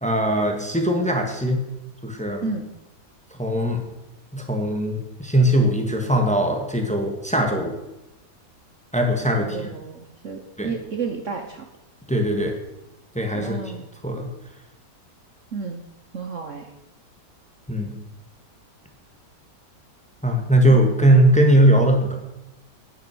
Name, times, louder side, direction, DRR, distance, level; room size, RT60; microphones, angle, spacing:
voice 1, 0.0-1.6 2.0-2.4 3.3-3.8 4.3-7.7 8.9-9.6 10.6-10.7 12.1-12.5 13.1-13.7 14.0-14.3 17.7-17.9 20.2-22.2, right 1 dB, 5° left, 3 dB, 1.6 m, -20 dB
voice 2, 9.4-11.7 13.3-13.8 15.5-15.8 16.1-16.7, right 5 dB, 50° right, 4 dB, 1.2 m, -31 dB
10.0 x 9.4 x 6.1 m, 0.94 s
omnidirectional pair, 1.9 m